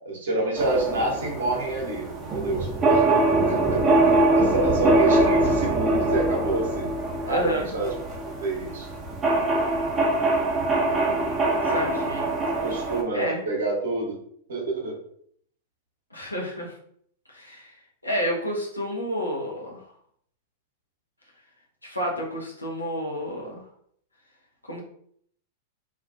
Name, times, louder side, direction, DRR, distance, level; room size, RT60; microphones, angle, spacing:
voice 1, 0.0-7.9 8.2-8.9 12.6-14.2 14.5-14.9, right 2 dB, 65° right, -1 dB, 0.8 m, -28 dB
sound 1, 0.6-13.0, right 2 dB, 20° right, 0.6 m, -23 dB
voice 2, 7.3-7.7 11.6-12.3 13.1-13.4 16.1-16.8 17.3-17.7 18.0-19.8 21.8-23.6 24.6-24.8, equal, 90° left, -2 dB, 0.6 m, -30 dB
2.4 x 2.1 x 2.4 m, 0.65 s
figure-of-eight pair, 95°, 0 cm